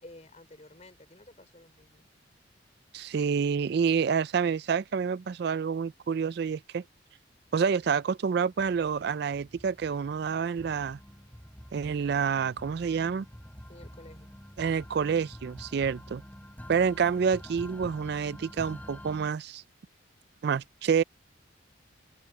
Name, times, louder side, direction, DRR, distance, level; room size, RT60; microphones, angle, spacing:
voice 1, 0.0-2.1 3.2-3.7 13.7-14.3, left 1 dB, 35° left, 3.4 m, -52 dB
voice 2, 2.9-6.8 7.5-11.0 11.7-13.3 14.6-16.2 16.7-19.6 20.4-21.0, right 6 dB, 55° right, 0.3 m, -28 dB
sound 1, 7.8-8.1 8.6-19.3, equal, 10° left, 4.0 m, -47 dB
open air
head